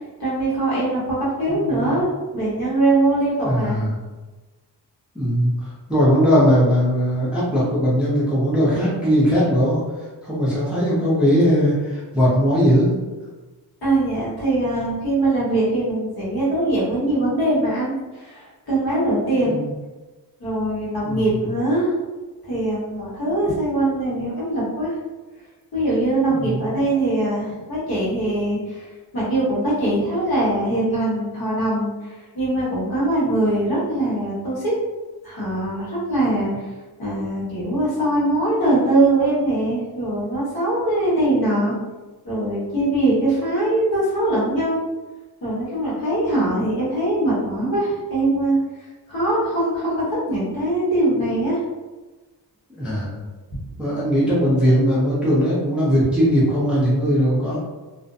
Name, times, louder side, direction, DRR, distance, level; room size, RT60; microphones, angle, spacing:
voice 1, 0.2-2.1 2.3-3.8 13.8-19.6 20.4-21.9 22.4-25.0 25.7-34.7 35.2-36.7 37.0-41.7 42.2-44.8 45.4-48.6 49.1-51.6, right 1 dB, 60° left, -8 dB, 1.2 m, -22 dB
voice 2, 1.5-2.0 3.4-3.9 5.1-9.8 10.2-13.0 19.4-19.7 21.0-21.4 26.2-26.7 52.8-53.2 53.8-57.6, equal, 5° right, -8 dB, 0.5 m, -19 dB
2.5 x 2.1 x 2.5 m, 1.2 s
wide cardioid pair, 175°, 41 cm